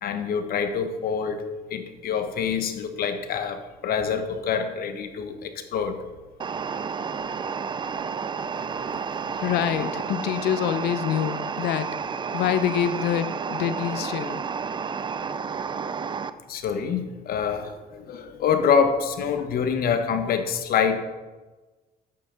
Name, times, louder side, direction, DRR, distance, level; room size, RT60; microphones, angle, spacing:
voice 1, 0.0-1.4 1.7-6.0 16.5-21.0, left 6 dB, 60° left, 8 dB, 1.1 m, -26 dB
sound 1, 6.4-16.3, right 6 dB, 25° right, 0.5 m, -31 dB
voice 2, 9.4-11.9 12.3-14.4, left 10 dB, 80° left, 12 dB, 0.7 m, -26 dB
11.0 x 7.9 x 3.9 m, 1.2 s
cardioid pair, 110°, 17 cm